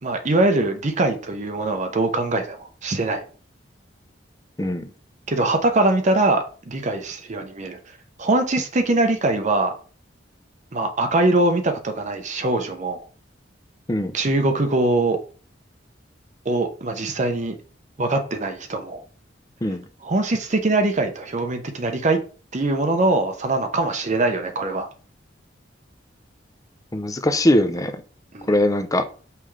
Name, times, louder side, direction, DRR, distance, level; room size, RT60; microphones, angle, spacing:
voice 1, 0.0-3.2 5.3-7.8 8.2-9.7 10.7-13.1 14.1-15.2 16.4-17.5 18.0-19.0 20.0-22.2 22.5-24.9 28.3-28.6, right 2 dB, 40° right, 0.8 m, -22 dB
voice 2, 4.6-4.9 13.9-14.1 19.6-19.8 26.9-28.0 28.5-29.0, left 1 dB, 20° left, 0.6 m, -21 dB
5.7 x 5.1 x 3.2 m
head